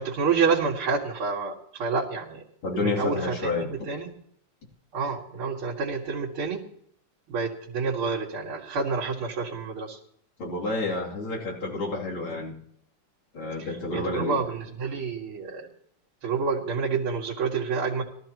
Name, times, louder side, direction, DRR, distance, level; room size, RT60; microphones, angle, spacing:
voice 1, 0.0-2.4 2.8-4.1 4.9-6.6 7.3-10.0 13.6-15.7 16.2-18.0, right 5 dB, 85° right, -4 dB, 2.8 m, -28 dB
voice 2, 2.6-3.7 10.4-12.6 13.3-14.4, left 3 dB, 90° left, -3 dB, 3.8 m, -30 dB
22.0 x 13.5 x 3.0 m, 0.66 s
omnidirectional pair, 2.3 m